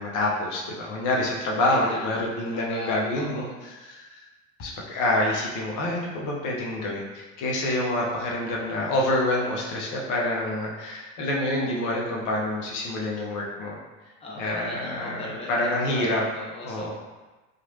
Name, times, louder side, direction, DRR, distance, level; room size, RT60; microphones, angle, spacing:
voice 1, 0.0-3.5 3.8-4.0 4.6-13.8 14.4-16.2 16.6-16.9, left 1 dB, 50° left, -2 dB, 0.8 m, -27 dB
voice 2, 1.7-3.6 14.2-16.9, left 1 dB, 15° left, -4 dB, 0.6 m, -39 dB
2.9 x 2.4 x 2.7 m, 1.2 s
hypercardioid pair, 75°, 39 cm